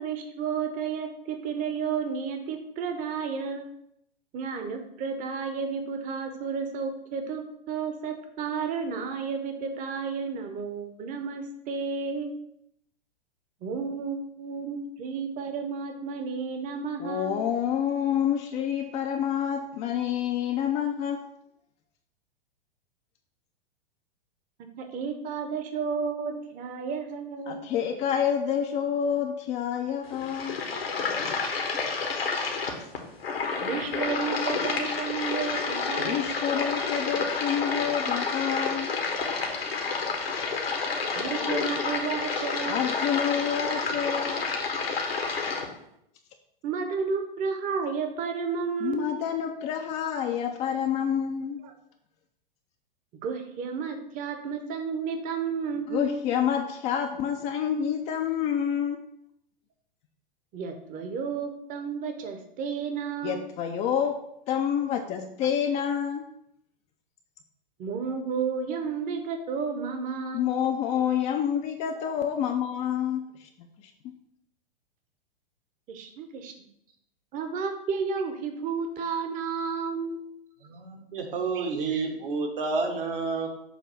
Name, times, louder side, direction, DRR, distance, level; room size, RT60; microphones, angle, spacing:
voice 1, 0.0-3.7 4.3-12.3 13.6-17.4 24.8-27.7 33.6-36.3 41.1-42.8 46.6-49.2 51.6-51.7 53.2-56.2 60.5-63.5 67.8-70.6 75.9-76.5 77.3-80.2, right 5 dB, 25° right, 6 dB, 0.8 m, -32 dB
voice 2, 17.0-21.3 27.5-30.6 31.2-31.3 36.0-38.9 42.7-44.4 48.8-51.6 55.9-59.0 63.2-66.2 70.3-73.2, left 8 dB, 25° left, 5 dB, 0.4 m, -28 dB
sound 1, 30.1-45.7, left 4 dB, 80° left, 1.2 m, -29 dB
voice 3, 80.7-83.5, right 4 dB, 65° right, 2 dB, 1.2 m, -29 dB
7.0 x 2.7 x 5.6 m, 0.77 s
figure-of-eight pair, 105°, 30 cm